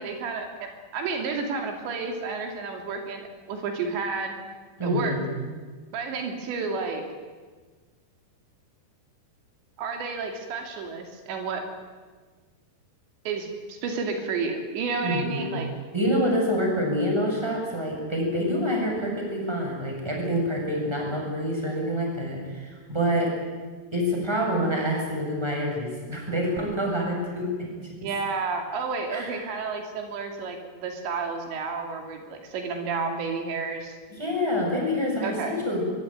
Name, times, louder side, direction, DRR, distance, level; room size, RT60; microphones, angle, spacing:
voice 1, 0.0-4.4 4.8-5.2 5.9-7.0 9.8-11.6 13.3-15.7 28.0-34.0 35.2-35.6, right 4 dB, 90° right, 4 dB, 4.9 m, -31 dB
voice 2, 4.8-5.3 15.0-15.6 15.9-23.3 23.9-27.5 29.1-29.4 34.2-35.8, equal, 5° right, -1 dB, 7.3 m, -27 dB
23.0 x 22.5 x 9.3 m, 1.4 s
omnidirectional pair, 4.9 m